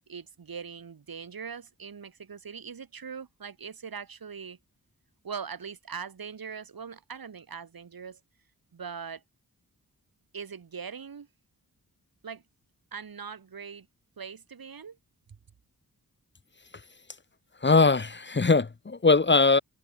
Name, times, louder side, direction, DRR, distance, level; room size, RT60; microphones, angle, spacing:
voice 1, 0.1-4.6 5.2-8.2 8.7-9.2 10.3-11.3 12.2-12.4 12.9-13.9 14.2-15.0, right 6 dB, 75° right, 4.0 m, -41 dB
voice 2, 17.6-19.6, left 3 dB, 30° left, 1.1 m, -21 dB
wide cardioid pair, 105°, 36 cm